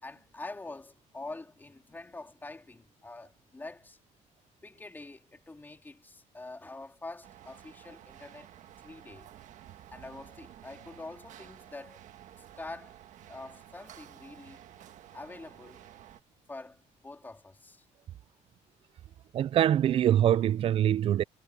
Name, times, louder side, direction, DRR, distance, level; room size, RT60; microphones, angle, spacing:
voice 1, 0.0-4.0 4.6-8.5 8.8-9.3 9.9-12.0 12.4-13.0 13.3-14.6 15.1-16.0 16.5-17.8, left 2 dB, 15° left, 3.3 m, -45 dB
sound 1, 7.2-16.2, right 11 dB, 70° right, 1.6 m, -52 dB
voice 2, 19.3-21.2, right 11 dB, 45° right, 0.3 m, -24 dB
cardioid pair, 145°, 13 cm